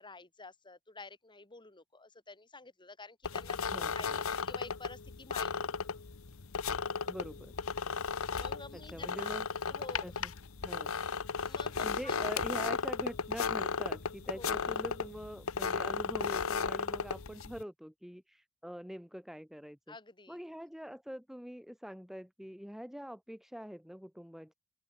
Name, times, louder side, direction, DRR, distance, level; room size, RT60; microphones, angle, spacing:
voice 1, 0.0-5.7 8.2-9.3 9.7-10.2 10.9-12.1 14.3-14.9 19.9-20.4, left 3 dB, 20° left, 3.1 m, -50 dB
sound 1, 3.2-17.6, left 5 dB, 75° left, 1.0 m, -35 dB
voice 2, 3.7-4.2 7.1-7.5 8.7-9.5 10.0-10.3 10.6-10.9 11.8-19.9 20.3-24.5, equal, ahead, 1.1 m, -44 dB
open air
head